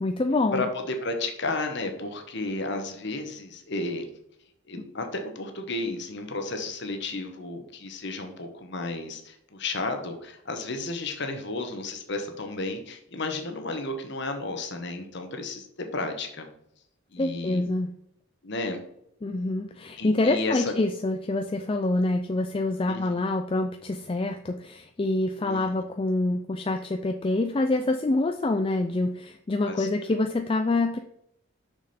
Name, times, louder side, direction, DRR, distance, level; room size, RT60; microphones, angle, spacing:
voice 1, 0.0-0.6 17.2-17.9 19.2-31.0, left 2 dB, 25° left, 6 dB, 0.4 m, -26 dB
voice 2, 0.5-4.0 4.7-15.7 15.9-16.4 17.1-17.6 18.4-18.8 20.0-20.8 22.8-23.0 25.4-25.8 29.7-30.0, left 2 dB, 55° left, 5 dB, 1.2 m, -32 dB
6.3 x 6.3 x 4.2 m, 0.75 s
head